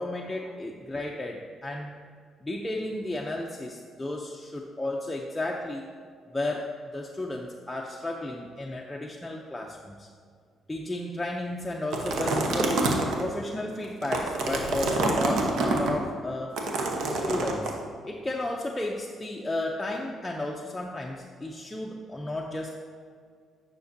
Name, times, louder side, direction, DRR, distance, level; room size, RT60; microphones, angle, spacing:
voice 1, 0.0-1.9 2.4-5.9 6.3-10.1 10.7-16.6 17.1-22.8, left 1 dB, 10° left, -1 dB, 0.5 m, -33 dB
sound 1, 11.9-13.2 13.8-15.9 16.6-17.7, right 2 dB, 75° right, 0.9 m, -27 dB
9.3 x 5.9 x 2.7 m, 2.1 s
cardioid pair, 90°, 0 cm